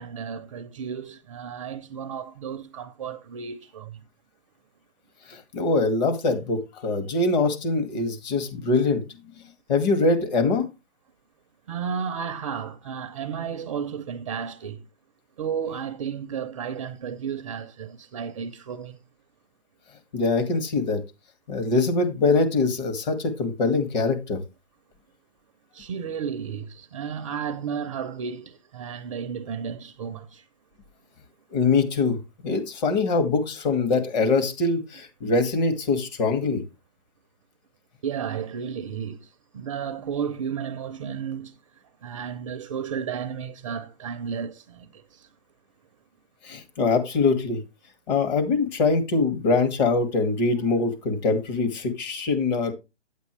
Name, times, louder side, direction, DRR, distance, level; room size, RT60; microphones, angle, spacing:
voice 1, 0.0-3.9 11.7-14.8 15.4-19.0 25.7-30.4 38.0-39.3 39.5-41.5 42.0-45.3, right 7 dB, 30° right, 0.5 m, -33 dB
voice 2, 5.3-9.0 9.7-10.7 20.1-21.0 21.5-24.4 31.5-32.2 32.4-36.6 46.4-47.6 48.1-52.7, left 3 dB, 40° left, 2.2 m, -23 dB
9.1 x 8.2 x 3.2 m
hypercardioid pair, 155°, 33 cm